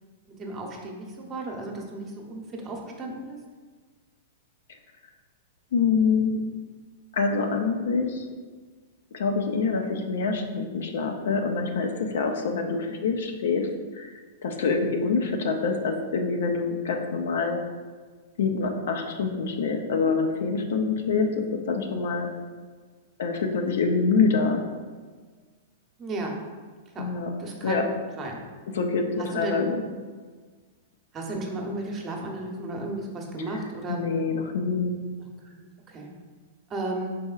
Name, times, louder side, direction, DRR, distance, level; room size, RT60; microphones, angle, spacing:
voice 1, 0.3-3.4 12.9-13.0 26.0-26.4 26.9-27.1 27.4-28.4 29.2-29.7 31.1-34.1 35.4-36.1 36.7-37.2, right 2 dB, 30° right, 1 dB, 0.9 m, -34 dB
voice 2, 5.7-6.4 7.1-8.3 9.1-13.7 14.0-14.1 14.4-17.6 18.4-22.3 23.2-24.6 27.0-27.3 27.6-27.9 28.7-29.8 33.9-34.9, left 4 dB, 70° left, 4 dB, 0.6 m, -25 dB
5.3 x 4.2 x 2.4 m, 1.5 s
hypercardioid pair, 110°, 0 cm